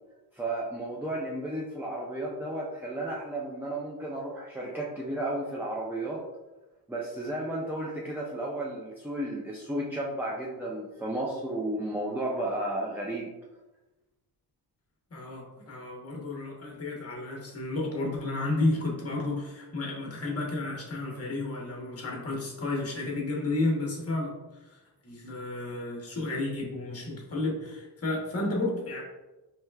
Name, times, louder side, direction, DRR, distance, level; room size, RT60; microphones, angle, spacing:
voice 1, 0.3-6.2 6.9-13.3, right 1 dB, 5° right, -4 dB, 0.4 m, -33 dB
voice 2, 15.1-29.0, left 2 dB, 35° left, -2 dB, 1.0 m, -32 dB
4.4 x 3.3 x 2.3 m, 1.1 s
cardioid pair, 115°, 41 cm